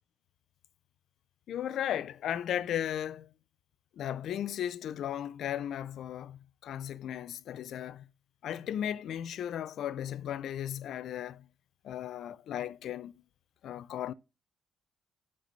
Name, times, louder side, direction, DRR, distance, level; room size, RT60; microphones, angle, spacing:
voice 1, 1.5-3.3 3.9-8.1 8.4-11.5 11.8-13.2 13.6-14.1, left 10 dB, 75° left, 0.4 m, -36 dB
6.8 x 3.3 x 5.3 m
cardioid pair, 90°, 0 cm